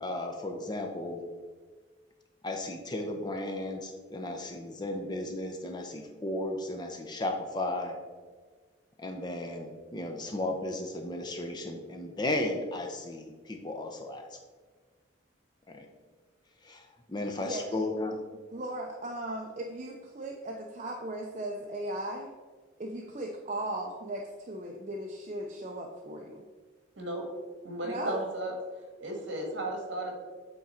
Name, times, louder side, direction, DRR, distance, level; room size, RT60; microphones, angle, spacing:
voice 1, 0.0-1.2 2.4-8.0 9.0-14.4 15.7-15.9 16.6-18.2, left 1 dB, 20° left, 3 dB, 0.6 m, -35 dB
voice 2, 18.5-22.3 22.8-26.4 27.8-28.2, right 1 dB, 35° right, 1 dB, 0.5 m, -37 dB
voice 3, 27.6-28.5 29.0-30.1, right 1 dB, 70° right, 1 dB, 1.6 m, -35 dB
8.4 x 3.7 x 4.3 m, 1.5 s
head